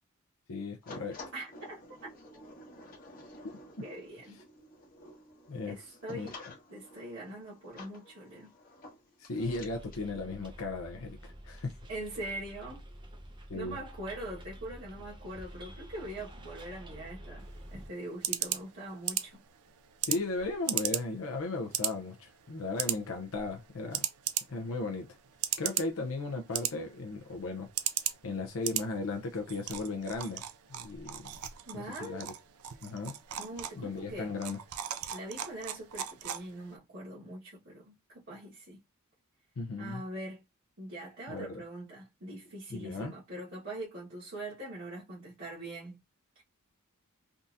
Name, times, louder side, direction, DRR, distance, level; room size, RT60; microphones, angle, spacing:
voice 1, 0.5-1.2 5.5-6.3 9.2-11.7 13.5-13.8 20.1-24.1 24.5-25.2 25.6-27.7 28.2-31.3 31.7-32.3 32.8-33.1 33.8-34.6 39.6-40.0 41.3-41.6 42.7-43.1, left 3 dB, 65° left, 0.6 m, -36 dB
sound 1, 0.8-10.0, left 2 dB, 40° left, 1.3 m, -51 dB
voice 2, 1.3-1.8 2.3-2.4 3.8-4.4 5.7-6.4 6.7-8.5 11.9-12.8 13.5-19.4 31.7-32.2 33.4-34.3 35.1-38.8 39.8-40.4 40.8-46.0 46.3-46.4, right 1 dB, 60° right, 1.3 m, -42 dB
Bus, 9.4-17.9, equal, 20° right, 0.6 m, -48 dB
sound 2, 17.4-36.8, right 11 dB, 75° right, 0.4 m, -38 dB
3.6 x 2.7 x 2.5 m
head